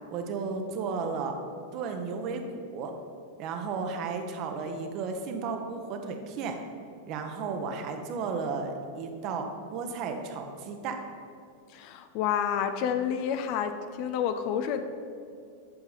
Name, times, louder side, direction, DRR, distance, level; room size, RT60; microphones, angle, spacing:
voice 1, 0.1-1.3 1.7-2.9 3.4-6.6 7.1-11.0, right 5 dB, 40° right, 5 dB, 1.0 m, -34 dB
voice 2, 11.7-14.8, left 8 dB, 45° left, 8 dB, 0.6 m, -29 dB
10.5 x 7.0 x 4.1 m, 2.4 s
figure-of-eight pair, 90°, 0 cm